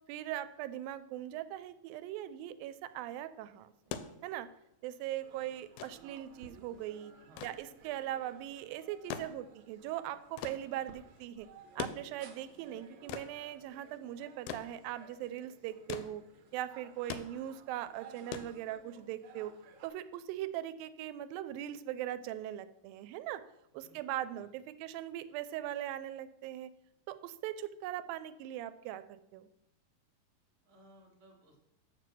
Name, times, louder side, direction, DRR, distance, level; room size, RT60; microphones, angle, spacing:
voice 1, 0.1-3.7 4.2-4.5 4.8-7.1 7.4-11.5 11.8-16.2 16.5-19.5 19.8-23.4 23.7-26.7 27.1-29.5, right 12 dB, 90° right, 13 dB, 2.3 m, -40 dB
sound 1, 3.7-19.2 20.4-20.5, left 8 dB, 85° left, 2.3 m, -45 dB
sound 2, 5.2-19.9, right 6 dB, 70° right, 1.8 m, -58 dB
voice 2, 7.1-7.5 23.7-24.5 30.6-31.6, right 1 dB, 35° right, -2 dB, 0.9 m, -61 dB
7.0 x 6.7 x 6.1 m, 0.84 s
omnidirectional pair, 4.1 m